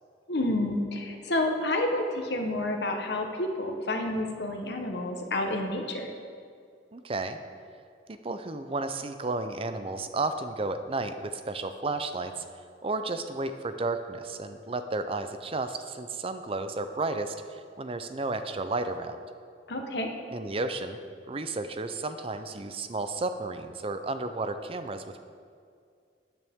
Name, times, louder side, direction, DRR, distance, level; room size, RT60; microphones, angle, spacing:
voice 1, 0.3-6.1 19.7-20.1, left 1 dB, 65° left, 3 dB, 1.1 m, -29 dB
voice 2, 6.9-7.4 8.1-12.4 12.8-19.2 20.3-21.0 21.3-25.2, right 3 dB, 30° right, 9 dB, 0.5 m, -32 dB
13.5 x 8.5 x 3.6 m, 2.2 s
head